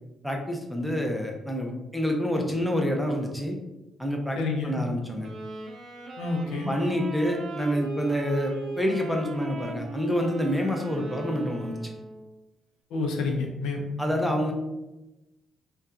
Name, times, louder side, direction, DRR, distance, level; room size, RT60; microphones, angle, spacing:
voice 1, 0.2-3.6 4.0-4.4 4.6-5.3 6.7-11.9 14.0-14.5, equal, ahead, 1 dB, 0.6 m, -27 dB
voice 2, 4.4-4.8 6.2-6.7 12.9-14.3, left 3 dB, 90° left, 2 dB, 0.5 m, -29 dB
Wind instrument woodwind instrument, 5.2-12.4, right 2 dB, 55° right, 0.5 m, -39 dB
2.6 x 2.3 x 3.5 m, 1.0 s
cardioid pair, 90°, 0 cm